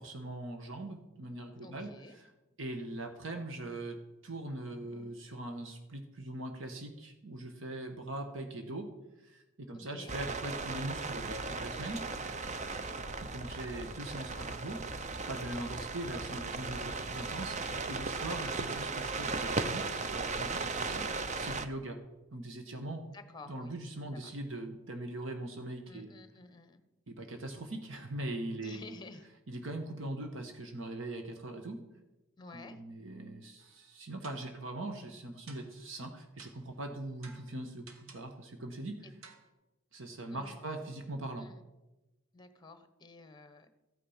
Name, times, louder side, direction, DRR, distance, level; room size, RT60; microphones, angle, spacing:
voice 1, 0.0-2.3 2.6-4.0 4.2-8.9 9.2-12.4 13.2-14.9 15.3-22.0 22.3-23.0 23.5-26.1 27.1-28.8 29.5-31.8 32.5-39.1 39.9-41.5, right 1 dB, 65° right, 5 dB, 1.3 m, -41 dB
voice 2, 1.6-2.2 9.7-10.2 12.6-13.0 23.1-23.7 24.1-24.3 25.9-26.8 28.6-29.3 32.4-32.8 39.0-39.1 40.3-40.6 41.4-41.6 42.3-43.7, left 3 dB, 20° left, 10 dB, 1.0 m, -52 dB
sound 1, 10.1-21.7, right 3 dB, 35° right, 0.7 m, -37 dB
sound 2, 33.6-33.9 34.2-34.6 35.5-35.9 36.4-36.8 37.2-38.4 39.2-39.5, right 4 dB, 80° right, 1.5 m, -55 dB
14.5 x 8.9 x 5.6 m, 1.0 s
head